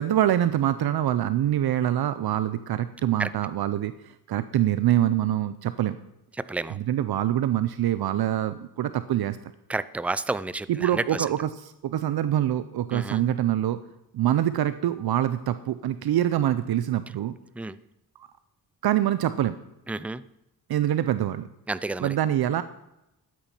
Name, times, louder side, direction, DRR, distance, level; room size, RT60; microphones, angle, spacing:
voice 1, 0.0-6.0 6.7-9.4 10.7-13.8 14.1-17.3 18.2-18.3 18.8-19.6 20.7-21.5 22.0-22.6, right 12 dB, 75° right, 13 dB, 0.7 m, -25 dB
voice 2, 6.4-6.8 9.7-11.2 12.9-13.2 17.6-17.8 19.9-20.2 21.7-22.1, right 3 dB, 5° right, 16 dB, 0.4 m, -30 dB
13.0 x 9.0 x 5.6 m, 0.86 s
wide cardioid pair, 120°, 38 cm